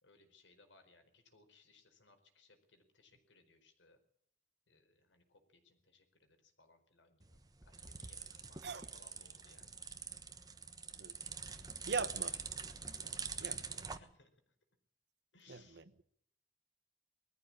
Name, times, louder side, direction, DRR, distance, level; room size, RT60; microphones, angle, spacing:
voice 1, 0.0-4.0 4.7-9.8 13.4-14.5 15.3-15.9, left 3 dB, 85° left, 4.7 m, -67 dB
sound 1, 7.2-14.0, right 5 dB, 20° right, 1.1 m, -44 dB
voice 2, 11.9-12.4 13.0-13.9 15.5-15.8, right 4 dB, 65° right, 1.1 m, -42 dB
21.0 x 14.5 x 8.7 m
head